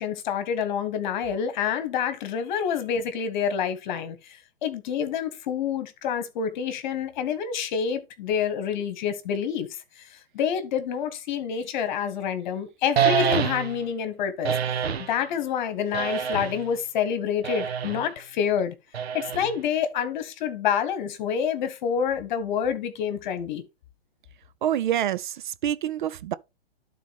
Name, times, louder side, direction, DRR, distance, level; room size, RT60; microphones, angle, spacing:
voice 1, 0.0-9.7 10.3-14.6 15.1-18.7 19.1-23.6, left 8 dB, 45° left, 1.4 m, -27 dB
sound 1, 13.0-13.9 14.4-15.1 15.9-16.7 17.4-18.1 18.9-19.7, right 7 dB, 75° right, 1.1 m, -26 dB
voice 2, 24.6-26.3, right 11 dB, 50° right, 0.5 m, -27 dB
12.0 x 4.0 x 3.5 m
hypercardioid pair, 130°, 32 cm